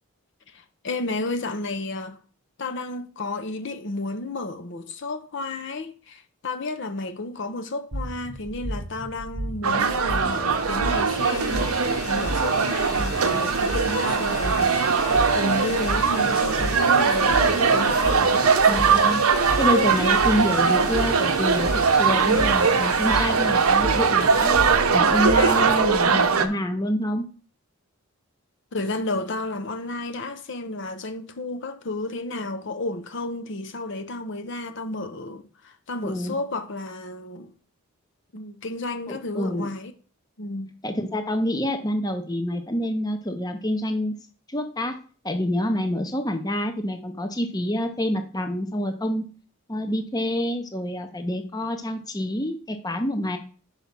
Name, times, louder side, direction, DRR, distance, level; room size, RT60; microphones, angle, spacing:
voice 1, 0.5-2.2 2.6-11.8 12.1-15.0 15.3-18.5 28.7-37.5 38.3-39.9 40.4-40.7, left 2 dB, 55° left, 0.6 m, -32 dB
sound 1, 7.9-26.0, right 1 dB, 50° right, 1.0 m, -34 dB
sound 2, 9.6-26.5, right 5 dB, 75° right, 0.7 m, -21 dB
sound 3, 10.4-24.8, left 3 dB, 80° left, 2.9 m, -38 dB
voice 2, 18.7-19.2 19.6-24.6 24.9-27.3 36.0-36.3 39.1-39.7 40.8-44.1 44.5-45.0 45.2-49.2 49.7-53.4, left 1 dB, 15° left, 0.6 m, -27 dB
5.8 x 5.0 x 5.8 m
head